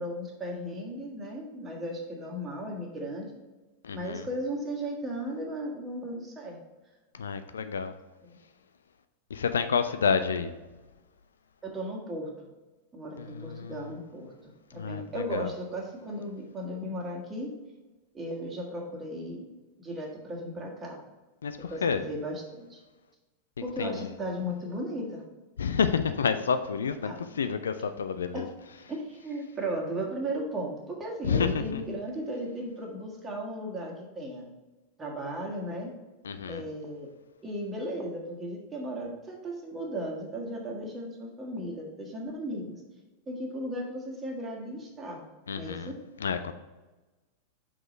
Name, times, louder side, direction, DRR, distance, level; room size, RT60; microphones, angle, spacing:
voice 1, 0.0-3.3 3.9-6.6 8.2-8.3 11.6-12.5 12.9-17.5 18.1-19.4 19.8-21.0 21.7-22.8 23.6-25.2 27.0-27.2 28.3-28.4 28.9-34.4 35.0-35.9 36.5-37.1 37.4-42.8 43.3-45.2 45.5-46.0, equal, 20° right, -1 dB, 1.6 m, -36 dB
voice 2, 3.8-4.3 7.1-7.9 9.3-10.5 13.2-13.9 14.7-15.5 21.4-22.0 23.8-24.1 25.6-28.5 31.2-31.8 36.2-36.6 45.5-45.9 46.2-46.5, left 6 dB, 70° left, 10 dB, 0.4 m, -29 dB
5.8 x 4.9 x 4.3 m, 1.2 s
figure-of-eight pair, 90°, 0 cm